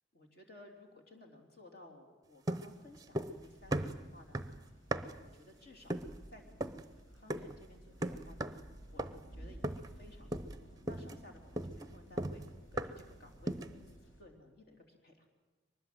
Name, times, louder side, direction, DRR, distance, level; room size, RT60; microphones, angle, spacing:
voice 1, 0.1-4.4 5.0-6.0 6.3-8.5 8.9-12.4 12.7-15.3, left 1 dB, 50° left, 3 dB, 3.6 m, -57 dB
sound 1, 2.5-3.4 3.7-5.3 5.9-6.2 6.6-6.9 7.3-7.6 8.0-8.7 9.0-9.3 9.6-10.0 10.3-10.6 10.9-13.1 13.5-13.8, right 1 dB, 20° right, 0.7 m, -38 dB
sound 2, 2.7-14.2, right 1 dB, 80° left, 5.0 m, -55 dB
23.0 x 20.0 x 7.8 m, 1.2 s
head